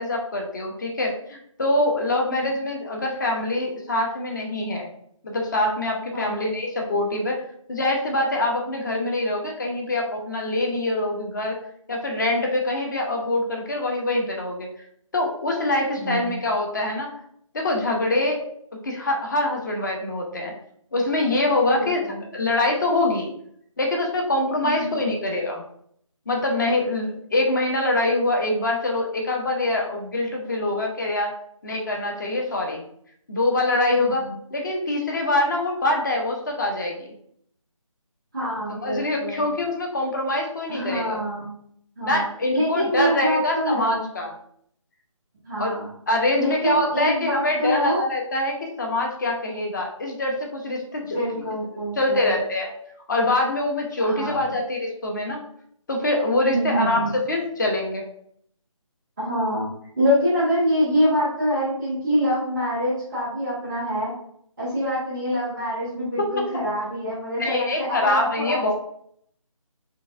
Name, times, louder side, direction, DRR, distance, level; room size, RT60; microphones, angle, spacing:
voice 1, 0.0-4.9 5.2-7.4 7.7-11.6 11.9-14.7 15.1-17.1 17.5-18.4 18.8-20.5 20.9-22.0 22.3-23.3 23.8-25.6 26.3-31.3 31.6-32.8 33.3-34.2 34.5-37.1 38.7-41.2 42.0-44.3 45.6-45.7 46.1-51.2 52.0-52.7 53.1-55.4 55.9-58.0 66.2-66.3 67.4-68.7, left 2 dB, 35° left, 1 dB, 0.7 m, -24 dB
voice 2, 16.0-16.3 21.7-22.2 24.8-25.2 33.9-34.4 38.3-39.5 40.7-41.5 42.0-42.2 42.5-44.1 45.4-45.9 46.3-48.0 51.1-52.3 54.0-54.5 56.4-57.1 59.2-59.7 60.0-64.1 64.6-68.7, equal, 5° right, -21 dB, 0.3 m, -25 dB
4.6 x 2.5 x 2.4 m, 0.67 s
figure-of-eight pair, 155°, 17 cm